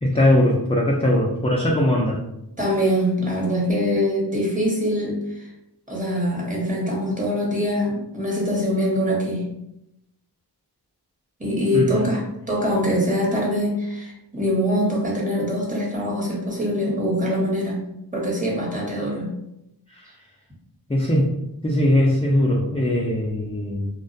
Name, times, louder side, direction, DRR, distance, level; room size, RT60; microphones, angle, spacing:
voice 1, 0.0-2.2 11.7-12.0 19.9-20.1 20.9-21.3 21.6-23.9, left 1 dB, 15° left, -3 dB, 0.3 m, -20 dB
voice 2, 2.6-5.5 5.9-9.4 11.4-17.8 18.1-19.3, equal, 20° right, -4 dB, 0.9 m, -23 dB
2.3 x 2.1 x 2.5 m, 0.85 s
wide cardioid pair, 65°, 41 cm